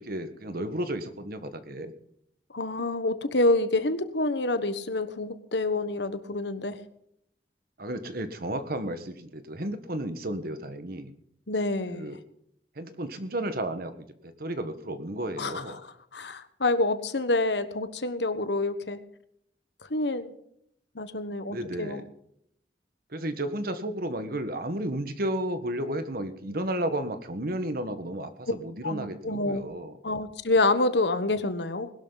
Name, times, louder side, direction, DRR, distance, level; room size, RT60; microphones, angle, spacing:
voice 1, 0.0-1.9 7.8-11.1 11.9-12.2 12.8-15.8 21.5-22.0 23.1-29.9, right 1 dB, 55° right, 10 dB, 1.6 m, -33 dB
voice 2, 2.5-6.8 11.5-12.1 15.4-19.0 19.9-20.3 20.9-22.0 28.8-29.6 30.0-31.9, left 2 dB, 75° left, 11 dB, 1.4 m, -27 dB
20.5 x 12.0 x 4.1 m, 0.73 s
head